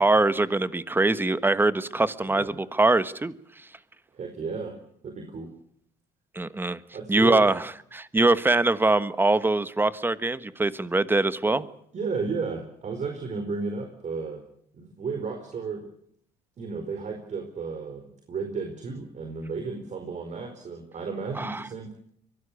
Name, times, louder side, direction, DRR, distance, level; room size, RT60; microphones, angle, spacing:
voice 1, 0.0-3.3 6.3-6.8 7.1-11.6 21.3-21.6, right 2 dB, 10° right, 14 dB, 1.3 m, -23 dB
voice 2, 4.1-4.7 5.0-5.5 6.9-7.5 11.5-11.6 11.9-14.4 14.7-15.9 16.6-21.9, right 4 dB, 45° right, 5 dB, 4.6 m, -33 dB
24.0 x 18.0 x 8.4 m, 0.67 s
cardioid pair, 110°, 17 cm